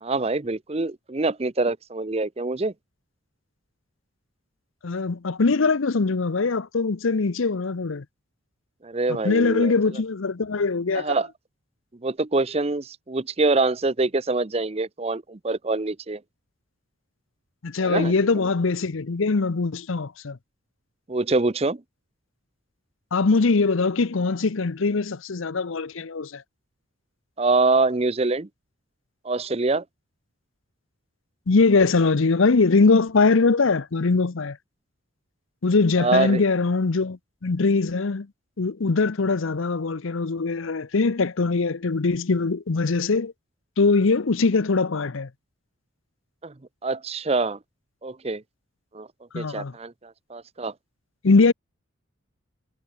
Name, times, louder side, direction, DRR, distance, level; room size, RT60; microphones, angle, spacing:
voice 1, 0.0-2.7 8.8-9.7 10.9-11.3 12.0-16.2 17.8-18.1 21.1-21.8 27.4-28.5 29.3-29.8 36.0-36.4 46.4-46.5 46.8-47.6 48.0-48.4 48.9-49.1 49.3-49.9 50.3-50.7, right 3 dB, 30° right, 0.6 m, -24 dB
voice 2, 4.8-8.0 9.2-11.2 17.6-20.4 23.1-26.4 31.5-34.6 35.6-38.3 38.6-43.3 43.8-45.3 49.3-49.7 51.2-51.5, left 4 dB, 70° left, 0.7 m, -22 dB
head